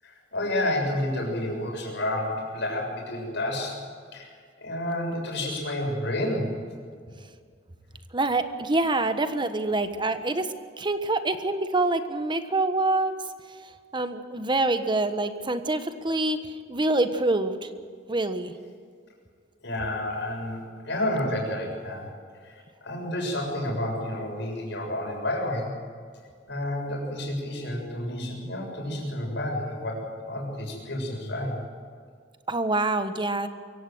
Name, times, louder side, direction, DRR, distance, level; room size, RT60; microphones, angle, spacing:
voice 1, 0.0-3.8 4.1-6.6 19.6-22.1 22.4-25.7 26.5-31.6, left 1 dB, 65° left, 0 dB, 7.0 m, -30 dB
voice 2, 8.1-10.5 10.8-13.1 13.9-17.7 18.1-18.5 32.5-33.5, right 2 dB, 25° right, 9 dB, 1.3 m, -26 dB
24.0 x 16.5 x 8.0 m, 2.1 s
head